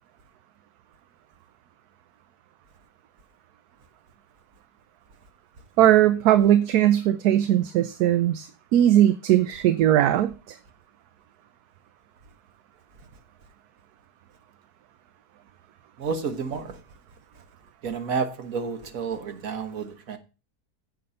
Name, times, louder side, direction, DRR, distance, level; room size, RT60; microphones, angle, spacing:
voice 1, 5.8-10.3, right 12 dB, 75° right, 1.2 m, -19 dB
voice 2, 16.0-16.8 17.8-20.2, right 5 dB, 60° right, 1.7 m, -30 dB
9.3 x 6.8 x 5.5 m
omnidirectional pair, 1.7 m